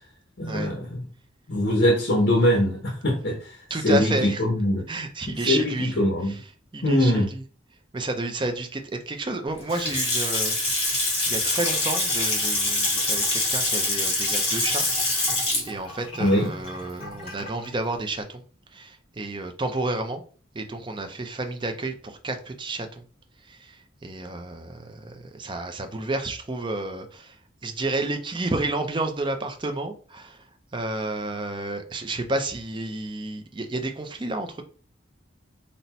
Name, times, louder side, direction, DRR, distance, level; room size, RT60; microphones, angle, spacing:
voice 1, 0.4-1.0 1.5-3.5 3.8-4.8 5.4-6.3 6.8-7.3 16.2-16.5, left 1 dB, 65° left, 0.9 m, -22 dB
voice 2, 3.7-4.4 4.9-5.9 6.2-7.4 7.9-10.6 10.8-14.8 15.7-18.4 18.7-20.2 20.5-23.0 23.5-27.4 27.6-30.4 30.7-34.6, right 2 dB, 25° right, 0.5 m, -31 dB
Water tap faucet / Sink (filling or washing) / Splash splatter, 9.6-17.7, left 2 dB, 30° left, 1.5 m, -25 dB
4.0 x 2.1 x 4.2 m
head